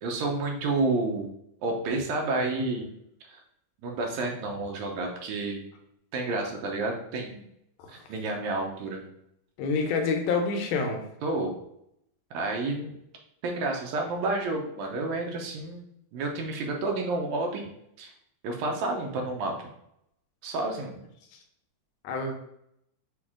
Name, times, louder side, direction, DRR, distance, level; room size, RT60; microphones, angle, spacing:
voice 1, 0.0-1.3 1.6-2.9 3.3-3.4 3.8-5.6 6.1-7.5 8.1-9.0 11.2-11.6 12.3-12.9 13.4-17.6 18.0-18.1 18.4-19.5 20.4-21.0, right 2 dB, 70° right, 1 dB, 1.9 m, -30 dB
voice 2, 9.6-11.0 22.0-22.3, left 4 dB, 80° left, 3 dB, 2.2 m, -27 dB
6.1 x 2.4 x 3.6 m, 0.77 s
omnidirectional pair, 3.8 m